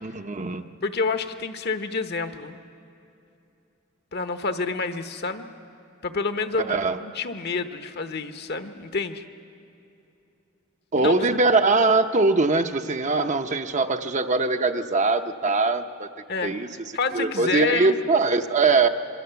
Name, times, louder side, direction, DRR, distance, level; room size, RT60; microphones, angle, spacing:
voice 1, 0.0-0.7 6.6-7.0 10.9-16.1 16.4-16.7 17.1-18.9, right 3 dB, 35° right, 7 dB, 0.8 m, -22 dB
voice 2, 0.8-2.6 4.1-5.5 6.0-9.2 11.0-11.1 16.3-16.5 16.9-18.0, left 4 dB, 55° left, 8 dB, 1.1 m, -28 dB
27.0 x 24.0 x 7.0 m, 2.8 s
head